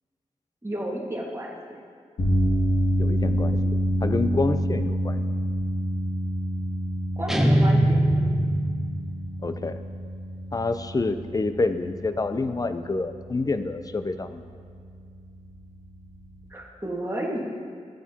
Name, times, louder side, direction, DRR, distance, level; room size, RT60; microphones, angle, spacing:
voice 1, 0.6-1.6 7.2-8.0 16.5-17.6, equal, 20° right, -4 dB, 1.8 m, -31 dB
sound 1, 2.2-16.5, equal, 85° left, 2.4 m, -28 dB
voice 2, 3.0-3.8 4.0-5.2 9.4-9.8 10.5-14.4, left 3 dB, 30° left, 10 dB, 0.5 m, -27 dB
sound 2, 7.3-9.3, right 1 dB, 5° right, 0.9 m, -22 dB
14.5 x 8.9 x 2.9 m, 2.1 s
wide cardioid pair, 70°, 13 cm